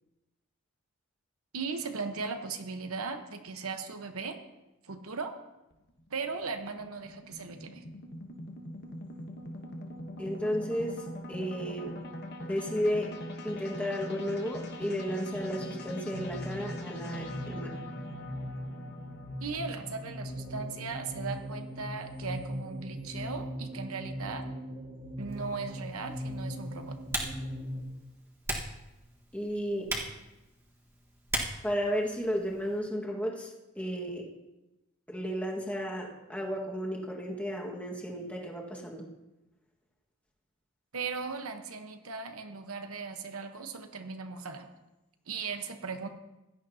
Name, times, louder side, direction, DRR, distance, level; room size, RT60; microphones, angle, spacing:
voice 1, 1.5-4.4 4.8-5.3 6.1-7.8 19.4-24.5 25.2-27.0 40.9-44.7 45.3-46.1, right 4 dB, 75° right, 6 dB, 1.1 m, -38 dB
sound 1, 5.7-22.1, left 1 dB, 50° left, 1.2 m, -43 dB
voice 2, 10.2-12.0 12.4-13.2 13.4-17.7 29.3-29.9 31.6-34.2 35.1-39.1, equal, 5° left, -2 dB, 1.7 m, -33 dB
sound 2, 15.3-27.8, equal, 45° right, 2.4 m, -40 dB
Typing, 25.3-32.8, right 1 dB, 10° right, 1.5 m, -40 dB
16.5 x 11.5 x 2.8 m, 0.99 s
head